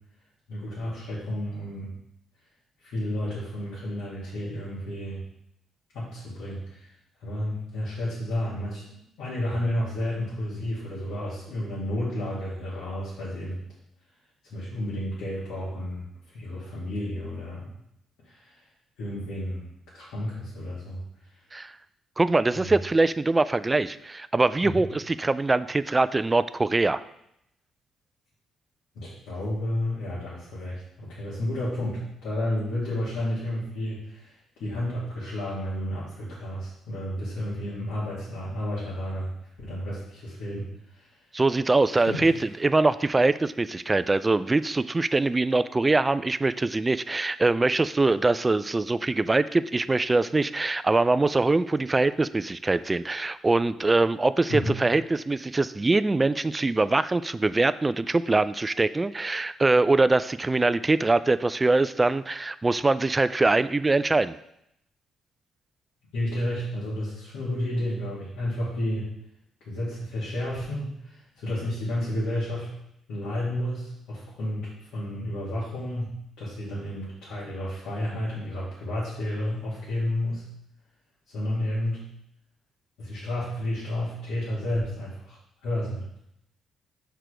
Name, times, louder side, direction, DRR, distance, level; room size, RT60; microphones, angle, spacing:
voice 1, 0.5-1.9 2.8-5.2 5.9-6.9 7.2-13.6 14.5-16.1 16.3-17.7 18.2-18.6 19.0-19.7 19.9-21.0 22.5-22.7 24.6-24.8 28.9-39.3 39.6-40.6 40.9-41.1 41.9-42.3 54.5-54.8 66.1-69.1 69.6-72.7 73.1-76.1 76.4-80.5 81.3-82.0 83.0-86.0, left 1 dB, 90° left, -9 dB, 2.4 m, -31 dB
voice 2, 22.2-27.0 41.3-42.3 42.6-64.3, right 3 dB, 20° right, 15 dB, 0.3 m, -23 dB
6.6 x 4.6 x 5.0 m, 0.78 s
cardioid pair, 90°, 0 cm